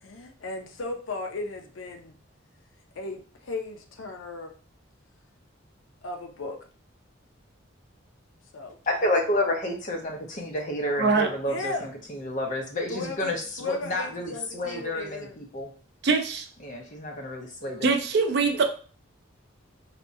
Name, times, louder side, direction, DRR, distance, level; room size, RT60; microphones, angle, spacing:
voice 1, 0.0-2.2 3.0-4.5 6.0-6.6 8.5-8.7 11.5-11.9 12.9-15.4, left 3 dB, 75° left, 4 dB, 0.5 m, -36 dB
voice 2, 8.9-15.7 16.6-17.9, left 1 dB, 40° left, 2 dB, 0.7 m, -30 dB
voice 3, 11.0-11.3 16.0-16.5 17.6-18.6, right 4 dB, 55° right, 5 dB, 0.5 m, -23 dB
4.2 x 2.2 x 2.6 m, 0.40 s
head